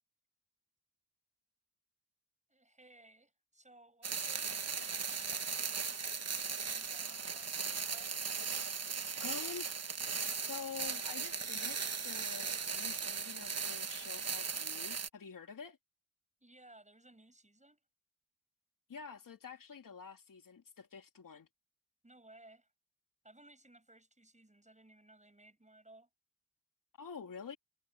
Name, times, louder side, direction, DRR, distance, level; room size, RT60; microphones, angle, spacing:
voice 1, 2.5-5.7 6.6-8.1 16.4-17.8 22.0-22.7 23.2-26.1, right 1 dB, 20° right, 6.7 m, -61 dB
sound 1, 4.0-15.1, right 5 dB, 50° right, 1.4 m, -38 dB
voice 2, 9.2-9.7 10.4-15.8 18.9-21.5 27.0-27.6, left 6 dB, 75° left, 3.1 m, -48 dB
cardioid pair, 50°, 33 cm